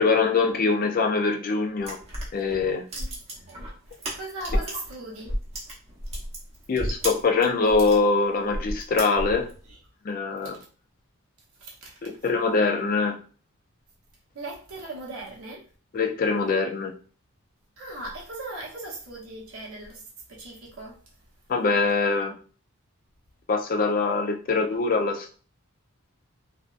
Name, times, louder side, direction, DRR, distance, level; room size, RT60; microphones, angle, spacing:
voice 1, 0.0-2.0 2.3-2.8 6.7-9.5 10.0-10.6 12.0-13.2 15.9-16.9 21.5-22.4 23.5-25.4, left 4 dB, 40° left, 0.3 m, -23 dB
sound 1, 1.8-4.9 5.2-8.0 8.5-9.6, equal, 30° right, 0.7 m, -32 dB
voice 2, 3.5-5.4 9.6-9.8 10.4-10.5 11.6-12.1 14.3-15.7 17.8-20.0 20.3-21.0, right 2 dB, 75° right, 0.7 m, -39 dB
2.6 x 2.0 x 2.4 m
head